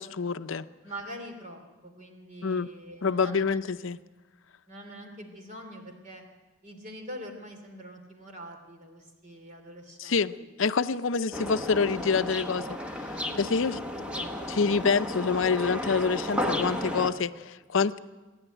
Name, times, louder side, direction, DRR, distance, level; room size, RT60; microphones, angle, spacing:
voice 1, 0.0-0.7 2.4-2.7 3.0-4.0 10.0-10.3 10.6-12.7 13.4-13.8 14.5-18.0, left 5 dB, 65° left, 13 dB, 0.6 m, -26 dB
voice 2, 0.8-3.6 4.7-6.2 6.6-10.2 10.8-10.9 13.2-15.0, equal, 35° right, 4 dB, 3.0 m, -44 dB
Bergen Norway, 11.3-17.1, left 1 dB, 5° right, 1.1 m, -33 dB
27.5 x 10.5 x 9.1 m, 1.3 s
head